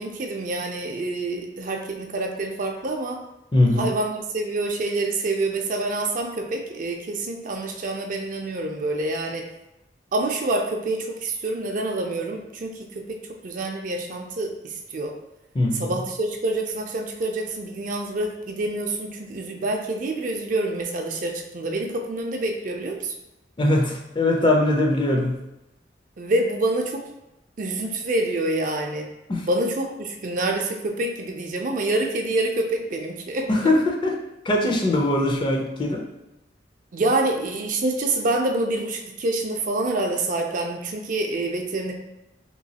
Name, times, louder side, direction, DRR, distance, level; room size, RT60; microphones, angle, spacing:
voice 1, 0.0-3.2 3.7-9.5 10.1-13.0 13.4-15.1 15.8-23.1 26.2-27.0 27.6-29.1 29.5-33.5 36.9-41.9, right 2 dB, 45° right, 2 dB, 0.4 m, -27 dB
voice 2, 3.5-3.9 15.5-15.9 23.6-25.4 29.3-29.5 33.5-34.1 34.4-36.0, left 1 dB, 25° left, 1 dB, 0.4 m, -21 dB
3.0 x 3.0 x 2.8 m, 0.93 s
head